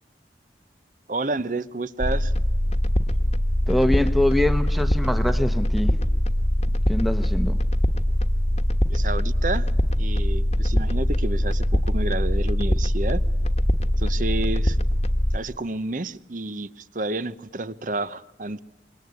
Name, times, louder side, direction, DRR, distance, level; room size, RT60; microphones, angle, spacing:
voice 1, 1.1-2.3 8.9-9.7 10.0-13.2 14.0-14.8 15.3-18.6, right 2 dB, 45° right, 15 dB, 0.9 m, -30 dB
sound 1, 2.0-15.4, equal, 35° left, 1.3 m, -22 dB
voice 2, 3.7-6.0 6.9-7.6, left 1 dB, ahead, 9 dB, 1.0 m, -24 dB
26.0 x 22.5 x 9.5 m, 1.0 s
head